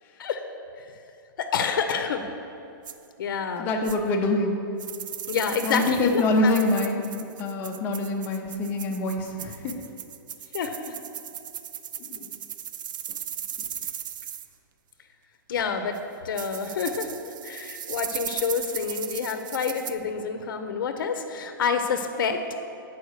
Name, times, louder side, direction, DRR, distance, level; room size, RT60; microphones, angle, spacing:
voice 1, 1.4-2.3 3.2-3.7 5.3-6.5 10.5-10.9 15.5-15.9 16.2-17.1 17.4-22.4, left 6 dB, 70° left, 7 dB, 0.7 m, -28 dB
sound 1, 2.8-2.9 3.8-4.0 4.8-14.5 15.9-16.0 16.4-19.9, right 9 dB, 65° right, 0.4 m, -37 dB
voice 2, 3.6-4.5 5.6-7.0 7.4-9.7 12.1-12.3, left 2 dB, 15° left, 2 dB, 0.6 m, -25 dB
8.1 x 4.8 x 6.4 m, 2.8 s
hypercardioid pair, 175°, 11 cm